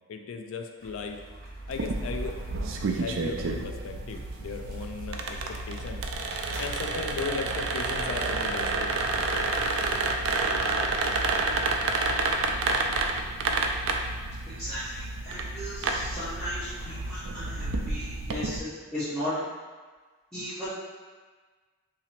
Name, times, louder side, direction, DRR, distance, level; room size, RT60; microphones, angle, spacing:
voice 1, 0.1-1.2 1.7-2.4 2.9-6.3 6.6-8.9 9.2-9.3 12.4-12.9 17.3-17.7, left 4 dB, 80° left, 5 dB, 0.4 m, -37 dB
sound 1, 0.8-17.3, right 1 dB, 50° right, 0.9 m, -47 dB
sound 2, 1.7-18.6, right 3 dB, 70° right, 0.4 m, -29 dB
voice 2, 14.5-19.4 20.3-20.7, equal, 5° left, -16 dB, 0.9 m, -36 dB
2.9 x 2.7 x 4.2 m, 1.4 s
head